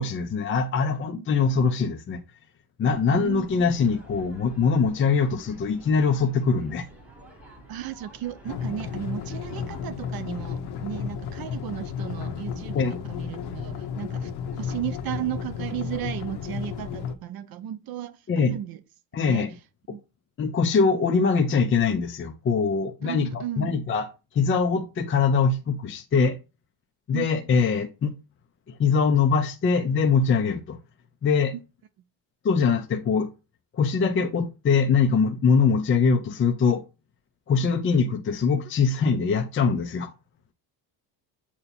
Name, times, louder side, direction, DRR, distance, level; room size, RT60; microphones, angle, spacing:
voice 1, 0.0-2.2 2.8-6.9 12.7-13.0 18.3-18.6 19.1-19.5 20.4-24.1 24.3-26.4 27.1-28.1 28.8-30.8 31.2-31.5 32.4-33.3 33.7-36.8 37.5-40.1, left 5 dB, 30° left, 0.6 m, -22 dB
sound 1, 2.8-10.6, right 1 dB, 5° right, 2.2 m, -49 dB
voice 2, 3.1-3.5 7.7-18.8 19.1-19.5 19.9-20.0 23.0-23.8 27.1-27.6, right 11 dB, 55° right, 0.6 m, -35 dB
sound 2, 8.5-17.1, left 7 dB, 65° left, 0.9 m, -33 dB
7.9 x 2.9 x 4.3 m
cardioid pair, 140°, 43 cm